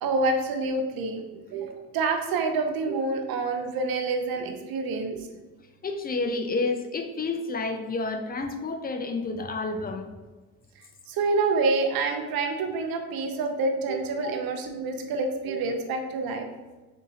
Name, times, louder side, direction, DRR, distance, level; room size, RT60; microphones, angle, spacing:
voice 1, 0.0-5.3 11.1-16.4, right 3 dB, 60° right, 4 dB, 0.6 m, -27 dB
voice 2, 5.8-10.1 14.2-14.3, left 3 dB, 25° left, 6 dB, 0.3 m, -30 dB
3.6 x 2.7 x 2.8 m, 1.2 s
supercardioid pair, 70°, 39 cm